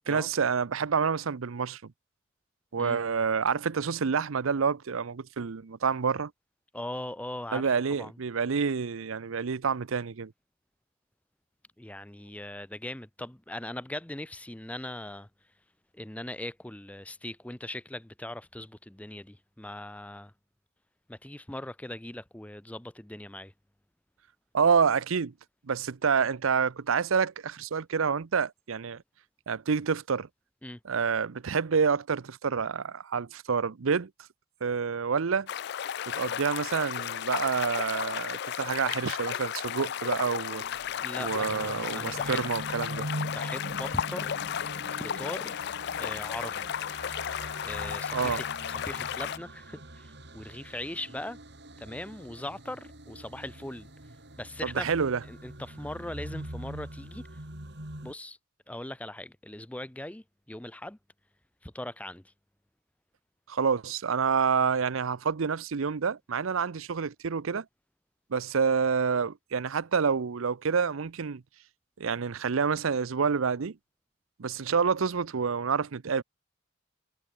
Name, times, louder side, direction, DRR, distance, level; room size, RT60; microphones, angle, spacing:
voice 1, 0.1-1.9 2.7-6.3 7.5-10.3 24.5-25.3 25.7-29.0 29.5-30.3 30.8-34.1 34.6-35.5 36.1-40.6 41.2-43.1 48.1-48.4 54.6-55.2 63.5-67.6 68.3-71.4 72.0-73.8 74.4-76.2, right 6 dB, 75° right, 0.6 m, -28 dB
voice 2, 6.7-8.2 11.8-15.3 15.9-20.3 21.1-23.5 30.6-30.8 41.0-42.4 43.3-44.4 44.9-46.7 47.6-51.4 51.8-53.9 54.4-54.9 55.2-57.4 58.0-58.4 58.7-61.0 61.6-62.3, left 1 dB, 5° left, 0.6 m, -40 dB
sound 1, 35.5-49.4, left 9 dB, 50° left, 0.3 m, -34 dB
sound 2, 40.3-58.1, right 1 dB, 55° right, 3.6 m, -43 dB
head